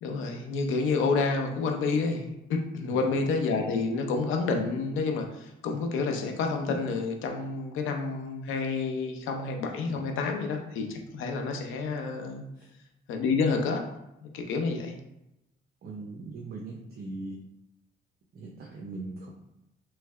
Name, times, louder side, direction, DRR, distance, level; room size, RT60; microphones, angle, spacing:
voice 1, 0.0-12.5 13.1-13.8 14.2-15.0, left 4 dB, 90° left, 3 dB, 0.7 m, -29 dB
voice 2, 15.8-17.4 18.3-19.3, right 3 dB, 55° right, -1 dB, 0.7 m, -40 dB
3.3 x 3.2 x 3.6 m, 0.88 s
cardioid pair, 90°, 20 cm